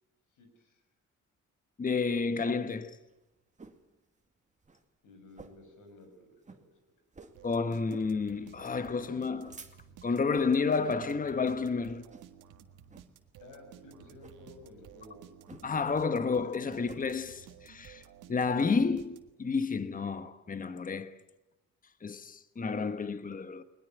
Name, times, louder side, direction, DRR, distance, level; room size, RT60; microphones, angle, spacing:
voice 1, 0.3-0.8 5.0-6.7 13.4-15.2, left 1 dB, 85° left, 6.5 m, -54 dB
voice 2, 1.8-3.0 7.4-9.6 10.0-12.1 15.6-18.0 18.3-21.2 22.0-23.6, left 4 dB, 30° left, 1.2 m, -30 dB
sound 1, 2.6-3.9 4.3-4.4 4.6-4.8 5.3-5.8 6.1-6.2 6.4-6.6 7.1-7.4 7.9-8.1 8.6-8.8 9.2-10.1 10.7-11.0 11.4-11.7 12.1-12.5 12.9-13.1 14.1-14.4 15.5-15.9 16.2-17.0, right 4 dB, 25° right, 2.3 m, -51 dB
sound 2, 7.3-19.6, right 9 dB, 85° right, 1.7 m, -54 dB
21.0 x 21.0 x 9.4 m
cardioid pair, 90°, 30 cm